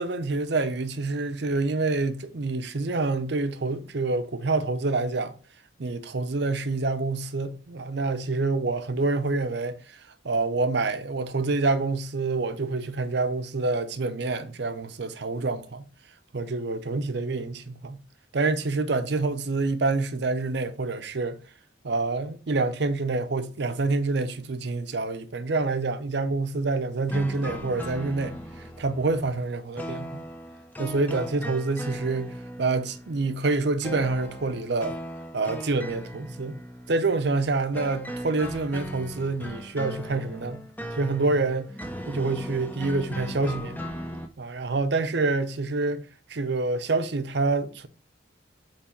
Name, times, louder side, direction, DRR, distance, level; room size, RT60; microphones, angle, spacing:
voice 1, 0.0-5.4 5.8-15.9 16.3-18.0 18.3-21.4 21.8-30.2 30.8-34.9 35.3-36.6 36.9-40.6 40.9-41.7 42.1-43.8 44.4-47.9, right 3 dB, 60° right, 0.6 m, -27 dB
sound 1, 27.1-44.3, equal, 10° left, 0.6 m, -38 dB
8.4 x 3.3 x 4.4 m
head